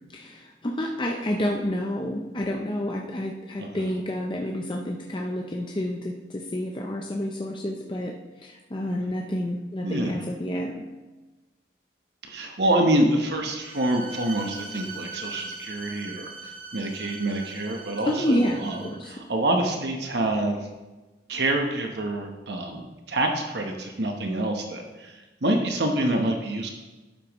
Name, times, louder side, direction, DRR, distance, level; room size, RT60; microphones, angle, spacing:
voice 1, 0.1-10.9 18.1-19.1, left 1 dB, 25° left, 0 dB, 0.6 m, -29 dB
voice 2, 3.6-3.9 9.8-10.1 12.2-18.8 19.0-20.7 21.3-26.7, right 1 dB, 65° right, 3 dB, 1.0 m, -26 dB
Bowed string instrument, 13.6-19.1, right 4 dB, 30° right, 1.1 m, -41 dB
11.5 x 8.5 x 3.1 m, 1.2 s
head